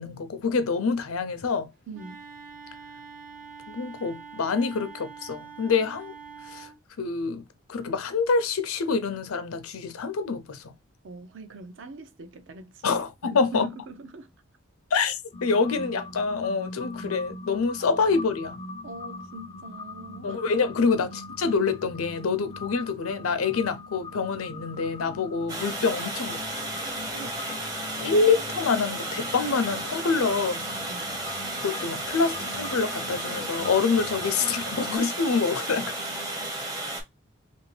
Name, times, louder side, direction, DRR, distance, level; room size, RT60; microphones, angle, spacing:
voice 1, 0.0-1.7 3.7-6.1 6.4-6.7 7.0-10.7 12.8-13.7 14.9-18.6 20.2-21.1 21.4-27.3 28.0-30.6 31.6-35.9, left 4 dB, 90° left, 0.5 m, -26 dB
Wind instrument woodwind instrument, 1.9-6.8, right 6 dB, 45° right, 1.0 m, -44 dB
voice 2, 1.9-2.2 11.0-13.0 13.3-14.3 17.8-17.9 18.8-20.4 20.8-21.0 30.9-31.1 35.7-36.5, right 3 dB, 60° right, 0.5 m, -43 dB
sound 1, 15.3-35.0, left 3 dB, 25° left, 0.4 m, -42 dB
Water, 25.5-37.0, right 2 dB, 15° right, 0.6 m, -33 dB
2.9 x 2.6 x 3.1 m
head